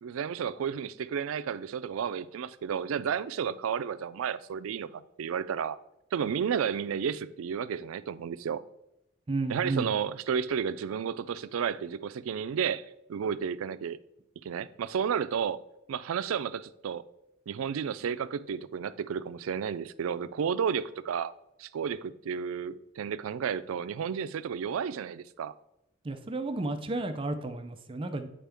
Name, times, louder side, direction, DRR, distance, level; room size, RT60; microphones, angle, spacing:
voice 1, 0.0-4.9 5.2-5.8 6.1-8.6 9.5-14.0 14.4-15.6 15.9-17.0 17.5-21.3 21.6-25.5, right 7 dB, 90° right, 0.4 m, -32 dB
voice 2, 9.3-9.9 26.0-28.3, right 2 dB, 25° right, 0.4 m, -32 dB
8.9 x 4.4 x 3.4 m
head